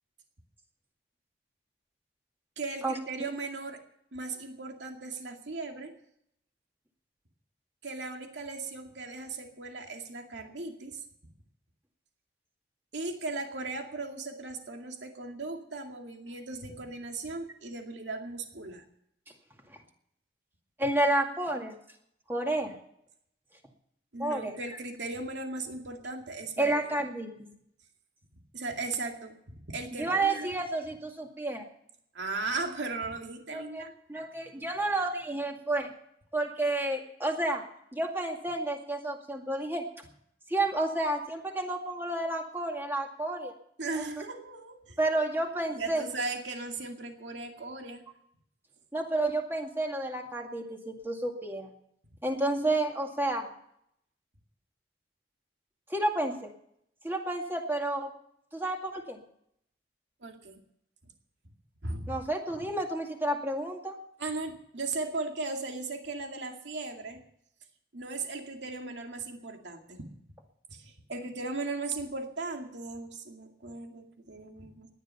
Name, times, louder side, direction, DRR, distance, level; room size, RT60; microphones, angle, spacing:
voice 1, 2.6-3.8 4.1-5.9 7.8-11.0 12.9-18.8 24.1-26.7 28.5-30.5 32.1-33.9 43.8-45.0 45.7-48.0 60.2-60.6 61.8-62.1 64.2-67.2 67.9-70.0 70.7-74.9, right 3 dB, 85° right, 3 dB, 2.3 m, -37 dB
voice 2, 20.8-21.7 22.3-22.7 24.2-24.5 26.6-27.3 30.0-31.6 33.5-33.8 34.1-35.9 36.3-37.6 37.9-39.8 40.5-43.5 43.9-44.1 45.0-46.0 48.9-51.7 52.2-53.5 55.9-56.3 57.0-58.1 58.5-59.2 62.1-64.0, right 2 dB, 10° right, 2 dB, 2.1 m, -30 dB
18.0 x 11.0 x 5.7 m, 0.72 s
head